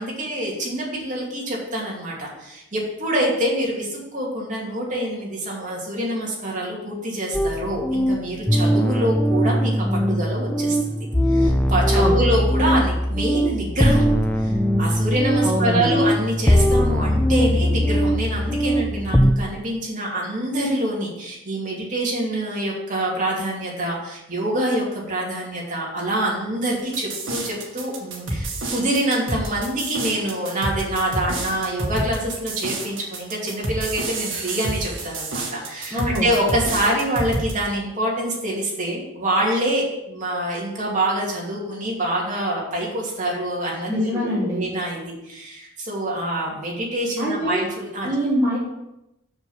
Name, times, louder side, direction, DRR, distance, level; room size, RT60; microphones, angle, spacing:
voice 1, 0.0-14.0 14.4-48.1, right 1 dB, 35° right, -3 dB, 2.6 m, -26 dB
sound 1, 7.3-19.3, equal, 5° left, 0.3 m, -20 dB
voice 2, 11.9-12.3 15.4-16.0 35.9-36.3 43.9-44.7 47.2-47.7 48.0-48.6, equal, 15° right, -7 dB, 1.6 m, -24 dB
sound 2, 26.9-37.5, right 2 dB, 60° right, 2.1 m, -29 dB
6.8 x 6.8 x 5.6 m, 0.88 s
head